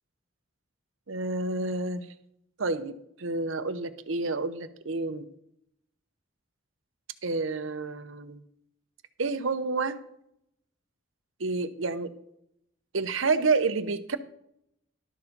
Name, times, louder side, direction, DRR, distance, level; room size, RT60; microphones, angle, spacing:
voice 1, 1.1-2.1 2.6-5.3 7.2-8.4 9.2-10.0 11.4-12.1 12.9-14.2, right 3 dB, 75° right, 11 dB, 0.8 m, -29 dB
12.0 x 7.1 x 5.3 m, 0.76 s
head